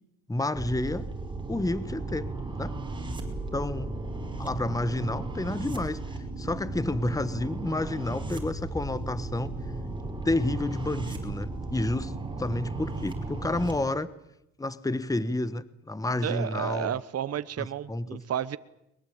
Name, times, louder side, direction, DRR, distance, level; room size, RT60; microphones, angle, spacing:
voice 1, 0.3-1.1 1.5-2.3 2.6-2.7 3.5-3.9 4.4-6.0 6.4-9.5 10.2-14.1 14.6-16.9 17.6-18.2, left 2 dB, 10° left, 15 dB, 1.3 m, -30 dB
sound 1, 0.6-13.7, right 2 dB, 15° right, 5.3 m, -35 dB
voice 2, 16.2-18.6, right 10 dB, 55° right, 14 dB, 1.1 m, -32 dB
22.5 x 22.0 x 8.7 m, 0.83 s
cardioid pair, 90°, 30 cm